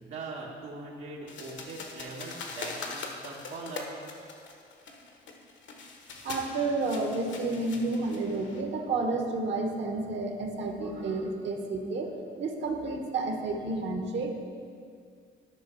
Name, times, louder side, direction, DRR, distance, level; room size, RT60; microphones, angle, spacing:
voice 1, 0.0-3.9, right 3 dB, 85° right, -4 dB, 1.6 m, -41 dB
sound 1, 1.3-8.6, left 4 dB, 70° left, 1.1 m, -42 dB
voice 2, 6.2-14.4, right 3 dB, 65° right, 3 dB, 1.2 m, -31 dB
12.5 x 5.3 x 4.5 m, 2.2 s
cardioid pair, 90°, 20 cm